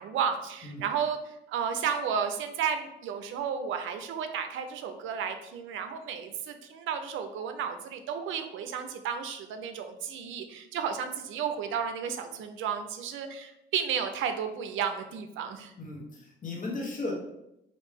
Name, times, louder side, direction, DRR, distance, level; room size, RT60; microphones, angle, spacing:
voice 1, 0.0-15.7, right 7 dB, 80° right, 7 dB, 0.5 m, -33 dB
voice 2, 15.8-17.1, left 2 dB, 40° left, -1 dB, 1.1 m, -36 dB
3.1 x 2.6 x 3.4 m, 0.83 s
cardioid pair, 90°, 20 cm